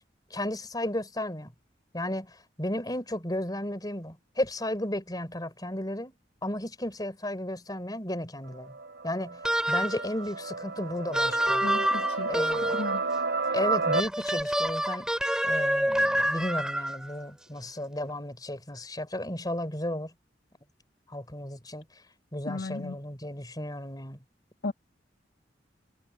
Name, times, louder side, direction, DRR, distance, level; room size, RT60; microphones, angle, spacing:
voice 1, 0.3-1.5 1.9-6.1 6.4-8.7 9.0-9.4 9.7-11.7 12.3-12.8 13.5-15.1 15.4-20.1 21.1-21.8 22.3-24.2, left 1 dB, 20° left, 4.8 m, -34 dB
sound 1, 8.5-14.0, right 4 dB, 75° right, 2.8 m, -32 dB
sound 2, 9.4-10.1 11.1-13.0 13.9-17.1, equal, 5° right, 3.1 m, -27 dB
voice 2, 11.6-13.0 22.4-23.0 24.6-24.7, left 3 dB, 65° left, 1.5 m, -35 dB
head